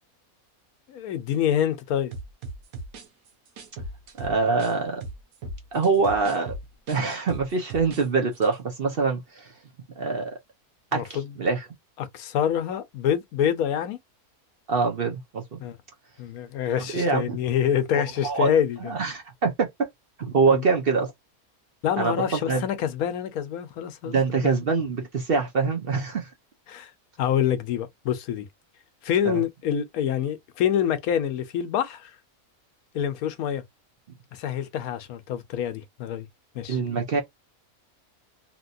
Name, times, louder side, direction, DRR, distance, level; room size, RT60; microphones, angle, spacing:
voice 1, 0.9-2.1 10.9-11.3 12.0-14.0 15.6-15.8 16.2-18.9 20.5-20.7 21.8-24.2 26.7-26.9 27.2-28.5 29.0-32.1 32.9-33.6 34.3-36.3 36.5-36.8, left 9 dB, 80° left, 1.1 m, -26 dB
sound 1, 2.1-4.7 5.0-8.1 8.3-8.5, right 2 dB, 75° right, 1.2 m, -38 dB
voice 2, 4.2-5.0 5.7-6.5 6.9-9.5 10.0-10.3 10.9-11.6 14.7-15.6 16.9-17.4 18.2-18.5 18.8-19.7 20.2-21.1 22.0-22.6 24.1-26.3 29.2-29.4 36.7-37.2, right 4 dB, 50° right, 0.8 m, -24 dB
2.9 x 2.9 x 2.6 m
omnidirectional pair, 1.5 m